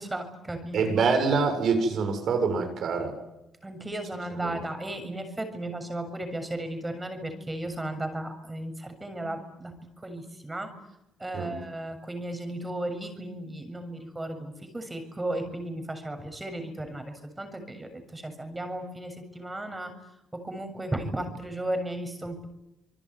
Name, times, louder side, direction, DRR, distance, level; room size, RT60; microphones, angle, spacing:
voice 1, 0.0-1.0 3.6-9.8 10.0-10.7 11.2-19.9 20.3-22.5, right 1 dB, 15° right, 7 dB, 7.1 m, -35 dB
voice 2, 0.7-3.2 4.3-4.6 11.3-11.5, right 5 dB, 65° right, 6 dB, 7.1 m, -25 dB
27.0 x 22.5 x 9.7 m, 0.90 s
cardioid pair, 90°, 0 cm